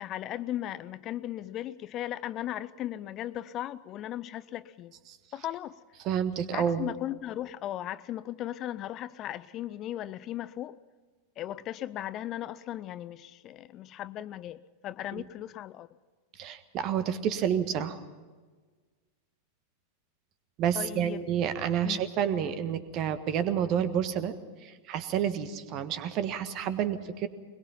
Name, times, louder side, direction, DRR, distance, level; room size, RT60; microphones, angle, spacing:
voice 1, 0.0-4.9 5.3-5.8 6.5-10.8 11.4-15.9 20.7-21.2 21.8-22.0, left 12 dB, 35° left, 0.5 m, -37 dB
voice 2, 6.0-6.9 16.4-18.0 20.6-27.3, right 9 dB, 40° right, 1.5 m, -29 dB
22.0 x 21.5 x 5.8 m
figure-of-eight pair, 90°, 0 cm